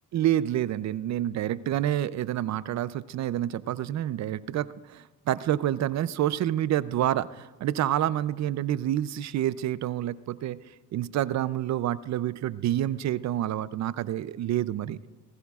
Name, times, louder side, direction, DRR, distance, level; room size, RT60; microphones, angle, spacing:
voice 1, 0.1-10.6 10.9-15.0, right 12 dB, 65° right, 17 dB, 0.6 m, -28 dB
19.5 x 15.0 x 2.4 m, 1.4 s
cardioid pair, 90°, 30 cm